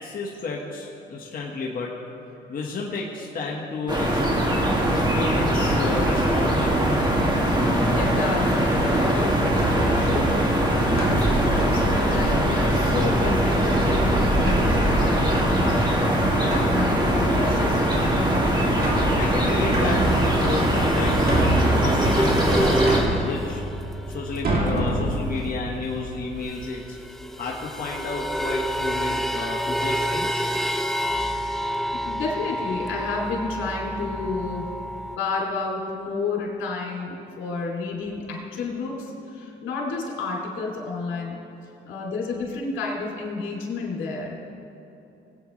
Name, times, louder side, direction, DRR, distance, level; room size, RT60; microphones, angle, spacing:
voice 1, 0.0-1.9 2.5-4.2 4.9-7.0 19.2-22.8 23.2-23.6 24.1-27.0 27.4-30.5, left 3 dB, 45° left, -3 dB, 1.5 m, -31 dB
sound 1, 3.9-23.0, right 1 dB, 20° right, 2.2 m, -21 dB
voice 2, 7.6-10.4 10.9-17.9 31.9-34.7 35.2-41.4 41.8-44.4, left 3 dB, 80° left, -2 dB, 2.8 m, -31 dB
sound 2, 9.5-26.4, right 1 dB, 50° right, 2.8 m, -29 dB
sound 3, 19.9-25.7 25.9-26.0 26.2-35.2, equal, ahead, 0.5 m, -29 dB
20.0 x 8.8 x 3.2 m, 2.9 s
cardioid pair, 90°, 20 cm